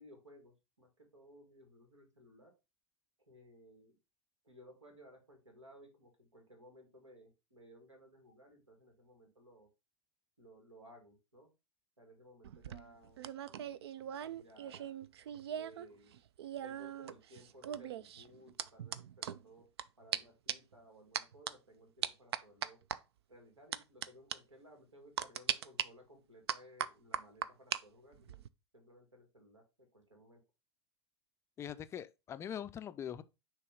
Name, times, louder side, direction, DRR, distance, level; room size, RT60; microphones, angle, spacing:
voice 1, 0.0-2.5 3.3-4.0 4.4-9.7 10.4-11.5 12.0-13.3 14.4-15.1 15.5-16.2 16.6-19.7 20.0-22.8 23.3-28.4 28.7-30.4, equal, 80° right, 2.1 m, -59 dB
sound 1, 12.4-15.9 16.1-19.8 20.1-20.2 20.5-20.7 21.1-21.5 22.0-23.0 23.7-24.1 24.3-24.4 25.2-25.8 26.5-27.8 28.1-28.5, right 10 dB, 60° right, 0.4 m, -39 dB
voice 2, 31.6-33.2, left 9 dB, 20° left, 0.4 m, -42 dB
6.6 x 2.9 x 4.9 m
figure-of-eight pair, 90°, 15 cm